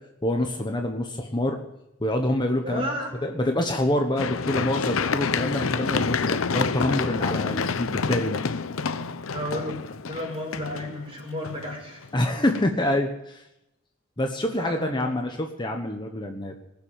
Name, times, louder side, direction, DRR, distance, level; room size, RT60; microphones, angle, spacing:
voice 1, 0.2-1.6 2.0-2.9 3.2-8.4 12.1-13.4 14.2-16.5, left 1 dB, 25° left, 3 dB, 1.2 m, -26 dB
voice 2, 2.6-3.1 9.3-9.8 10.1-12.1 14.6-15.1, equal, 30° right, 0 dB, 5.5 m, -33 dB
Run, 4.2-12.1 12.6-12.7, left 5 dB, 85° left, 0.7 m, -28 dB
20.0 x 7.2 x 9.2 m, 0.86 s
head